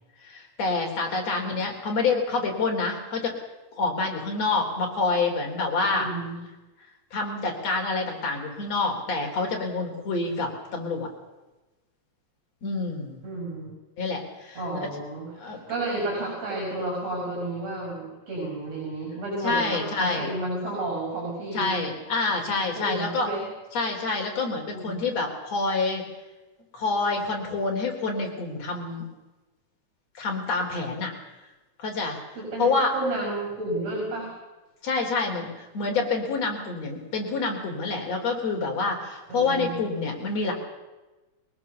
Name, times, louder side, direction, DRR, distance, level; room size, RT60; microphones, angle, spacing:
voice 1, 0.2-3.3 3.8-6.1 7.1-11.1 12.6-13.2 14.0-14.9 15.4-15.6 19.4-20.3 21.5-23.3 23.7-26.1 26.7-29.1 30.2-31.1 31.8-32.2 32.6-32.9 34.8-40.5, left 3 dB, 60° left, 1 dB, 4.5 m, -27 dB
voice 2, 5.9-6.4 13.2-13.7 14.6-21.8 22.6-23.4 24.6-25.1 32.3-34.3 39.3-39.8, right 2 dB, 55° right, -1 dB, 7.4 m, -32 dB
22.0 x 19.0 x 6.9 m, 1.1 s
omnidirectional pair, 3.4 m